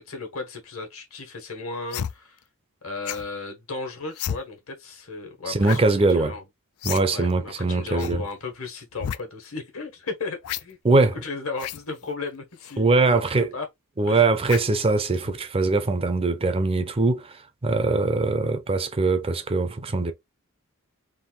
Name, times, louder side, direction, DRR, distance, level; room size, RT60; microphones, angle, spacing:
voice 1, 0.0-2.4 2.8-6.4 7.1-10.8 11.1-13.2 13.5-13.7 14.1-14.3, left 3 dB, 70° left, 1.5 m, -35 dB
sound 1, 1.9-2.1 3.1-3.3 4.1-4.4 5.6-5.8 6.1-6.2 6.8-7.0 7.3-7.4 8.0-8.2 8.9-9.2 10.4-10.6 11.5-11.8 12.6-12.8 14.5-14.8 15.2-15.4, left 9 dB, 90° left, 0.4 m, -31 dB
voice 2, 5.5-6.3 6.8-8.2 10.8-11.2 12.8-13.5 14.0-20.1, right 3 dB, 25° right, 0.5 m, -22 dB
3.7 x 2.6 x 4.0 m
head